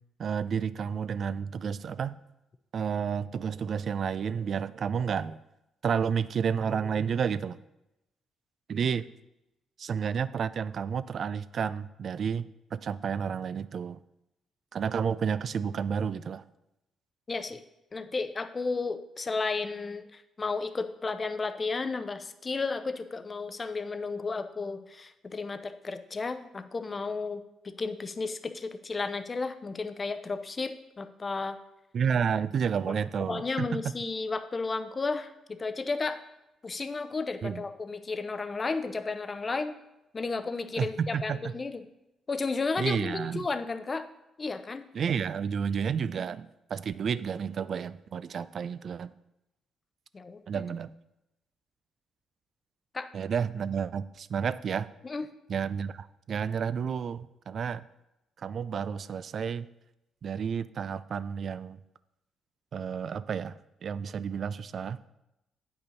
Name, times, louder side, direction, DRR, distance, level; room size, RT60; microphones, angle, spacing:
voice 1, 0.2-2.2 2.7-5.4 5.8-7.6 8.7-9.0 9.8-14.0 14.7-16.4 31.9-33.8 37.4-37.6 40.8-41.5 42.8-43.5 44.9-49.1 50.5-50.9 53.1-54.9 55.5-57.8 58.4-59.7 60.2-61.8 62.7-63.6 63.8-65.0, right 7 dB, 55° right, 15 dB, 0.3 m, -31 dB
voice 2, 17.3-17.6 17.9-31.6 32.9-33.0 33.3-36.2 36.6-39.7 40.1-41.8 42.3-44.1 44.4-44.9 50.1-50.6 52.9-53.1 55.0-55.2, left 4 dB, 30° left, 10 dB, 0.6 m, -33 dB
8.7 x 5.6 x 4.0 m, 0.90 s
cardioid pair, 90°, 0 cm